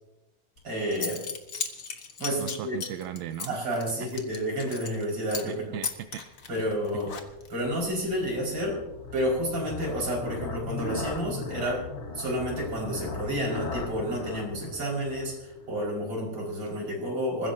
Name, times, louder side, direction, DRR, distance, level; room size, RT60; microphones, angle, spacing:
Zipper (clothing) / Coin (dropping), 0.6-0.7 0.9-5.0 5.3-5.5 5.8-7.6, left 6 dB, 50° left, 0.9 m, -36 dB
voice 1, 0.6-1.2 2.2-2.8 3.5-5.8 6.5-7.1 7.5-8.8 9.1-11.8 12.1-17.5, equal, 35° right, -3 dB, 6.0 m, -30 dB
voice 2, 2.4-3.6 4.0-4.1 5.5-6.2 6.6-6.7, right 11 dB, 75° right, 9 dB, 1.7 m, -38 dB
sound 1, 6.3-15.9, left 3 dB, 80° left, 0.5 m, -38 dB
27.0 x 15.5 x 2.8 m, 0.98 s
omnidirectional pair, 3.5 m